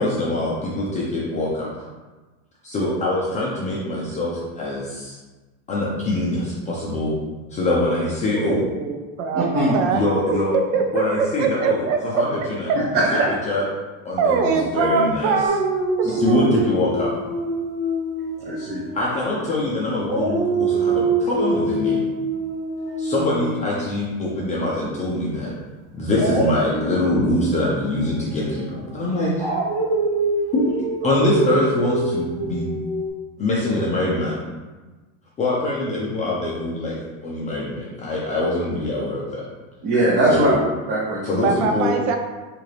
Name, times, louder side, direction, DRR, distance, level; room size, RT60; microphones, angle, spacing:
voice 1, 0.0-1.9 2.6-5.2 5.7-7.2 7.5-8.7 9.9-10.5 10.9-13.2 13.5-13.7 14.0-15.3 16.0-17.1 18.9-22.0 23.0-25.5 25.9-29.5 30.5-30.6 31.0-32.7 33.4-34.4 35.4-39.4 40.3-40.6 41.3-41.9, left 1 dB, 20° left, -5 dB, 0.4 m, -24 dB
voice 2, 8.3-9.5 9.7-10.4 10.7-12.2 14.2-15.6 16.0-16.5 41.4-42.2, right 4 dB, 80° right, 4 dB, 0.7 m, -22 dB
voice 3, 9.3-9.8 12.7-13.2 18.4-18.8 31.0-31.2 39.8-40.5 40.9-41.2, right 1 dB, 30° right, -6 dB, 0.6 m, -20 dB
Dog, 15.5-19.6 20.0-25.0 26.1-33.1, right 2 dB, 10° right, 1.1 m, -26 dB
3.8 x 2.5 x 3.2 m, 1.2 s
supercardioid pair, 135°, 37 cm